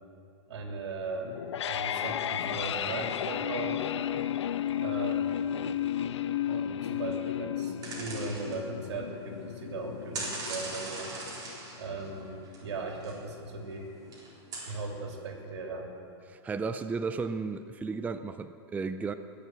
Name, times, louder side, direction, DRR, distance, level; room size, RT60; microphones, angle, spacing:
voice 1, 0.5-1.3 1.6-3.8 4.8-5.9 6.5-11.1 11.8-13.9 14.7-15.9, right 3 dB, 80° right, 1 dB, 3.0 m, -38 dB
sound 1, 1.2-12.2, left 10 dB, 85° left, 0.5 m, -33 dB
sound 2, 7.8-9.0 9.3-9.7 10.1-13.1 13.5-13.6 14.1-14.8, right 3 dB, 25° right, 4.1 m, -40 dB
voice 2, 16.3-19.1, right 4 dB, 10° right, 10 dB, 0.4 m, -34 dB
21.5 x 7.4 x 7.8 m, 2.7 s
hypercardioid pair, 125°, 14 cm